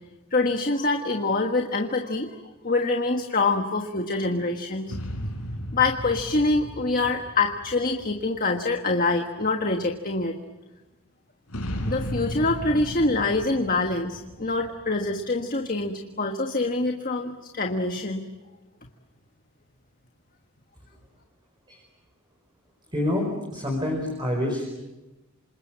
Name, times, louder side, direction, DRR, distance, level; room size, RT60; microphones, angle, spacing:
voice 1, 0.3-2.3 2.6-4.9 5.7-10.4 11.9-18.3, left 3 dB, 40° left, 4 dB, 1.5 m, -25 dB
sound 1, 4.9-8.6 11.5-15.3, equal, 80° left, 5.7 m, -35 dB
voice 2, 22.9-24.7, left 1 dB, 20° right, 1 dB, 5.1 m, -27 dB
27.5 x 27.5 x 7.6 m, 1.1 s
head